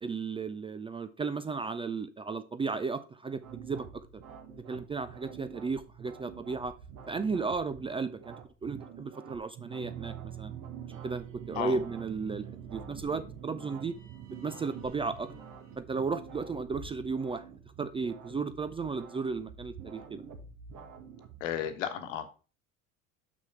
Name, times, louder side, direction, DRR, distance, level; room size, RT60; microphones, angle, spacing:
voice 1, 0.0-4.0 4.7-6.7 7.1-8.4 8.6-10.5 11.0-14.0 14.4-15.3 15.8-17.4 17.8-20.2, right 4 dB, 15° right, 12 dB, 0.4 m, -34 dB
sound 1, 3.4-21.7, right 6 dB, 50° right, 1.6 m, -48 dB
sound 2, 9.8-15.8, right 10 dB, 65° right, 1.7 m, -46 dB
voice 2, 21.4-22.3, left 10 dB, 70° left, 9 dB, 1.3 m, -33 dB
6.1 x 6.0 x 4.5 m, 0.35 s
hypercardioid pair, 70°, 40 cm